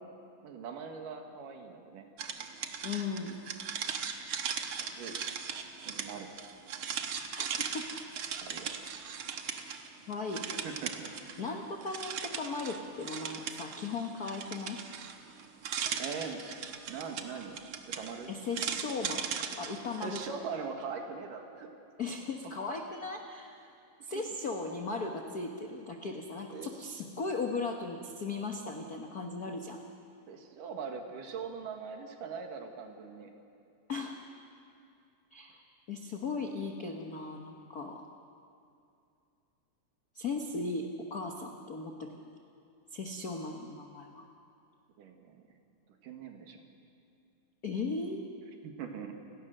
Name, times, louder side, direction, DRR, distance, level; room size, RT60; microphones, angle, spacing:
voice 1, 0.4-2.1 4.8-5.2 5.8-6.3 8.3-8.7 10.5-11.1 16.0-16.4 16.9-17.6 17.9-18.3 20.0-21.7 24.1-24.2 26.5-26.7 30.3-33.3 45.0-45.4 46.0-46.7 48.6-49.1, right 6 dB, 90° right, 4 dB, 3.4 m, -41 dB
sound 1, 2.2-9.9 10.1-11.5 11.8-20.3, right 7 dB, 60° right, 1.5 m, -38 dB
voice 2, 2.8-3.4 7.3-7.5 7.7-8.0 10.1-10.5 11.4-14.8 18.3-20.2 22.0-23.7 24.0-29.8 33.9-34.2 35.3-35.6 35.9-38.0 40.1-42.2 42.9-44.3 47.6-48.2, left 3 dB, 85° left, 3 dB, 0.8 m, -37 dB
29.5 x 18.0 x 6.6 m, 2.6 s
omnidirectional pair, 3.7 m